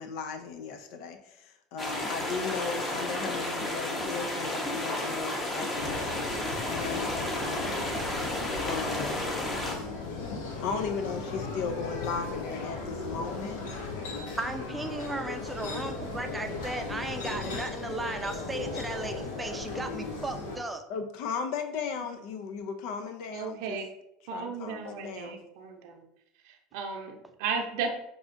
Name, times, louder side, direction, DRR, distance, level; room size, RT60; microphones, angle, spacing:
voice 1, 0.0-1.5 1.7-6.1 6.7-7.9 8.6-9.2 10.6-13.6 20.9-23.8 24.3-25.4, left 5 dB, 70° left, 7 dB, 0.4 m, -36 dB
sound 1, 1.8-9.7, left 1 dB, 25° left, 0.8 m, -32 dB
sound 2, 5.7-20.6, left 3 dB, 85° left, 0.8 m, -37 dB
voice 2, 14.4-20.8, right 2 dB, 10° right, 5 dB, 0.5 m, -35 dB
voice 3, 23.3-23.9 24.3-26.0 26.4-27.9, right 5 dB, 75° right, 3 dB, 0.6 m, -35 dB
6.0 x 2.4 x 2.6 m, 0.79 s
supercardioid pair, 110°, 0 cm